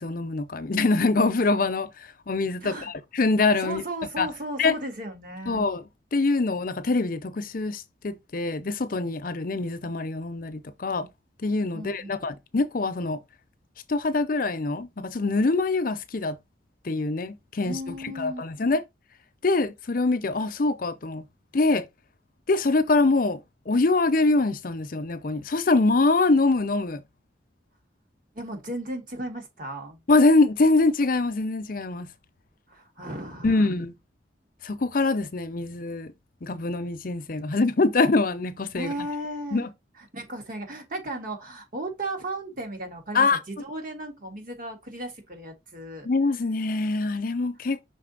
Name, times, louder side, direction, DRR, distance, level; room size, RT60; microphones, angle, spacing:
voice 1, 0.0-1.9 2.3-3.8 4.2-4.3 4.6-4.8 5.5-5.8 6.1-11.1 11.4-13.2 13.9-16.4 16.8-18.8 19.4-21.2 21.5-21.9 22.5-23.4 23.7-27.0 30.1-32.1 33.4-33.9 34.6-36.1 36.4-38.9 39.5-39.7 43.1-43.4 46.0-47.8, left 3 dB, 50° left, 0.6 m, -24 dB
voice 2, 2.6-2.9 3.6-5.7 11.7-12.2 17.6-18.4 28.3-30.0 32.7-33.7 38.7-39.7 40.0-46.1, right 1 dB, 45° right, 1.9 m, -35 dB
5.9 x 4.0 x 3.9 m
head